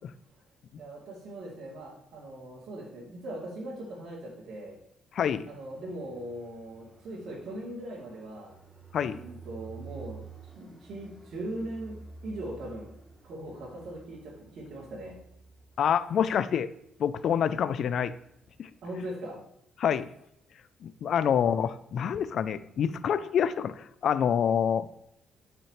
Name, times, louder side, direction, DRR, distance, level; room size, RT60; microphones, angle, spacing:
voice 1, 0.8-4.8 5.4-8.6 9.1-10.2 10.5-12.9 13.2-15.2 18.8-19.4, right 1 dB, 65° right, -6 dB, 2.9 m, -40 dB
voice 2, 5.1-5.5 8.9-9.2 15.8-16.7 17.0-18.1 18.6-18.7 19.8-20.1 20.8-24.9, left 8 dB, 65° left, 15 dB, 0.5 m, -27 dB
Fixed-wing aircraft airplane, 5.5-19.0, right 4 dB, 10° right, 3.1 m, -51 dB
12.0 x 6.0 x 3.2 m, 0.78 s
cardioid pair, 90°, 0 cm